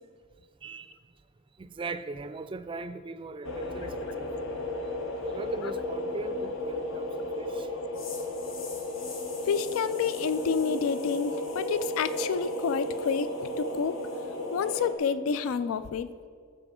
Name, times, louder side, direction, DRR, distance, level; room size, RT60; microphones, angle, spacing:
voice 1, 0.6-1.0 1.6-4.5 5.3-7.7, right 3 dB, 25° right, 11 dB, 0.3 m, -40 dB
sound 1, 3.4-14.9, left 1 dB, 75° left, 1.1 m, -34 dB
voice 2, 9.5-13.3 13.6-14.0 14.5-16.1, left 6 dB, 90° left, 14 dB, 0.3 m, -29 dB
13.5 x 6.8 x 3.7 m, 2.1 s
head